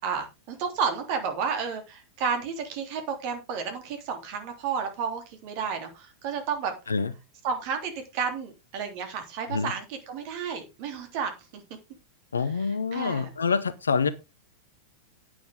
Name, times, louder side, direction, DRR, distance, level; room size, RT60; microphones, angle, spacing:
voice 1, 0.0-7.0 7.4-11.6 12.5-13.3, right 6 dB, 45° right, 3.2 m, -32 dB
voice 2, 12.3-14.1, left 5 dB, 75° left, 0.8 m, -26 dB
11.0 x 9.4 x 3.7 m
figure-of-eight pair, 90°, 0 cm